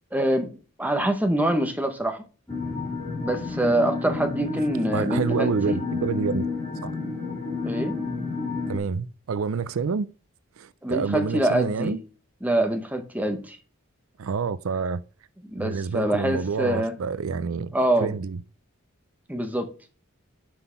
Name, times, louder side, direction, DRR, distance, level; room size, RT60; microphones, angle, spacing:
voice 1, 0.1-2.2 3.2-5.8 7.6-8.0 10.8-12.0 12.4-13.6 15.5-16.9 17.7-18.1 19.3-19.7, right 1 dB, 10° right, 1.0 m, -25 dB
sound 1, 2.5-8.8, left 3 dB, 10° left, 2.7 m, -30 dB
voice 2, 4.9-6.5 6.8-6.9 8.7-10.1 10.6-12.0 14.2-15.0 15.6-17.7 18.0-18.4, right 5 dB, 75° right, 0.4 m, -28 dB
6.0 x 5.5 x 5.7 m
head